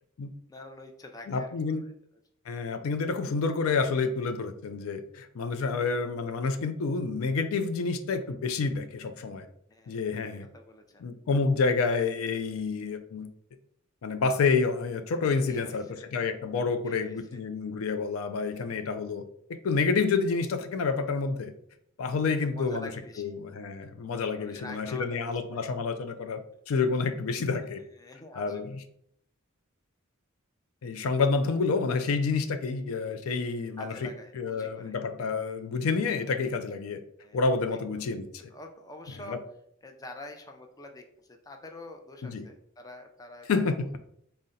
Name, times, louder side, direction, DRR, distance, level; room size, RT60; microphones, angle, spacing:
voice 1, 0.5-1.9 5.7-5.9 9.7-10.0 10.5-11.1 15.5-16.1 16.8-17.2 22.4-23.4 24.4-25.6 26.5-26.6 27.7-28.6 33.8-35.0 37.2-37.5 37.7-37.8 38.5-39.4 39.8-43.8, left 1 dB, 15° left, 4 dB, 0.4 m, -46 dB
voice 2, 1.3-1.8 2.5-9.5 9.9-10.5 11.0-13.3 14.0-19.2 19.5-21.5 22.0-22.9 23.2-26.4 26.7-27.8 28.4-28.8 30.8-34.1 34.3-37.0 37.3-38.3 39.3-39.4 42.2-42.5 43.5-44.0, left 4 dB, 90° left, 9 dB, 0.4 m, -28 dB
4.0 x 2.1 x 3.7 m, 0.70 s
head